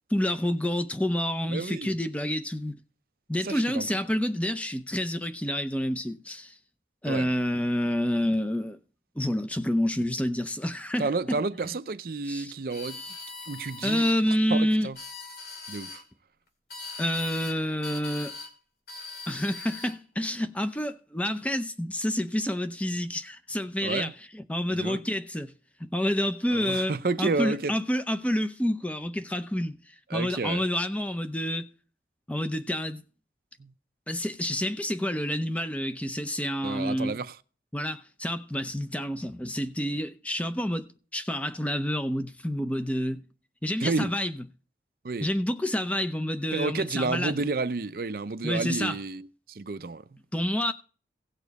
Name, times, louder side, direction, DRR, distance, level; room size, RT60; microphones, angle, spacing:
voice 1, 0.1-2.8 3.3-6.6 7.0-8.8 9.2-11.4 11.7-11.8 12.3-12.5 13.8-14.9 17.0-18.3 19.3-25.5 25.8-26.9 27.2-29.7 30.1-31.7 32.3-33.0 34.1-37.2 37.7-43.2 43.6-44.4 45.2-47.4 48.4-49.0 50.3-50.7, left 1 dB, 10° left, 0.6 m, -28 dB
voice 2, 1.5-1.9 3.4-3.9 7.1-7.3 11.0-13.0 13.5-14.1 14.5-15.0 15.7-16.0 23.8-24.1 24.7-25.0 26.5-27.7 30.1-30.6 33.6-33.7 36.6-37.3 43.8-44.1 45.0-45.3 46.5-50.2, right 3 dB, 55° right, 0.5 m, -30 dB
sound 1, 12.7-14.2 14.8-16.0 16.7-17.6 17.8-18.5 18.9-20.0, left 4 dB, 60° left, 2.3 m, -41 dB
17.0 x 6.9 x 4.1 m
head